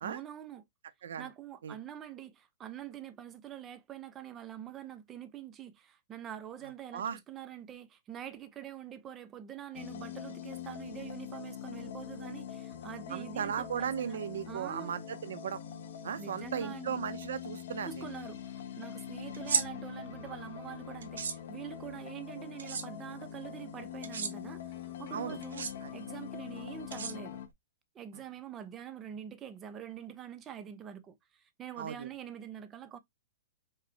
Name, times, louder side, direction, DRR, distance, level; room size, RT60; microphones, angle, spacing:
voice 1, 0.0-0.6 1.2-14.2 14.5-14.9 16.2-17.0 17.8-25.7 25.9-27.4 27.9-33.0, right 10 dB, 15° right, 0.6 m, -45 dB
sound 1, 9.7-27.5, left 9 dB, 55° left, 1.1 m, -44 dB
voice 2, 13.1-15.6 16.0-18.0 25.1-25.4 25.8-25.9 31.8-32.1, right 8 dB, 65° right, 0.7 m, -36 dB
sound 2, 19.3-19.6 21.0-21.4 22.6-22.8 24.0-24.3 25.4-25.7 26.9-27.5, right 6 dB, 90° right, 1.3 m, -33 dB
5.1 x 2.2 x 4.3 m
hypercardioid pair, 170°, 0 cm